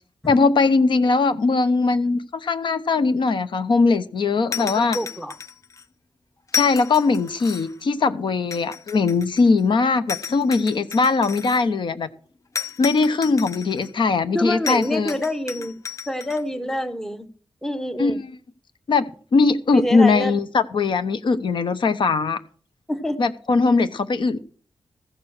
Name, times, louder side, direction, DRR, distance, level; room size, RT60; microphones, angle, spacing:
voice 1, 0.3-5.0 6.5-12.1 12.8-15.1 18.0-18.3 18.9-22.4 23.2-24.4, left 4 dB, 60° left, 12 dB, 0.9 m, -20 dB
sound 1, 4.5-5.8 6.5-7.8 8.5-9.6 10.1-11.6 12.6-13.9 14.7-16.4, left 7 dB, 35° left, 0.5 m, -32 dB
voice 2, 4.6-5.4 14.3-15.8 16.1-17.3 17.6-18.2 19.7-20.4 22.9-23.2, equal, 5° left, 11 dB, 0.8 m, -27 dB
14.5 x 6.8 x 6.2 m, 0.43 s
wide cardioid pair, 170°, 9 cm